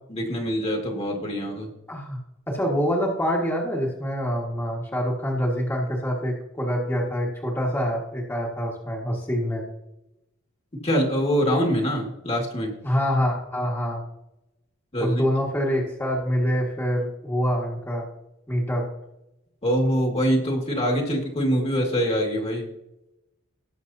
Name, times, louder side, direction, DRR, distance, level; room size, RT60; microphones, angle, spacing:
voice 1, 0.1-1.7 10.8-12.7 14.9-15.2 19.6-22.7, equal, 30° left, 0 dB, 2.0 m, -24 dB
voice 2, 1.9-2.2 2.5-9.6 12.8-14.0 15.0-18.1 18.5-18.8, equal, 10° left, -3 dB, 1.8 m, -25 dB
19.0 x 6.8 x 2.8 m, 0.89 s
head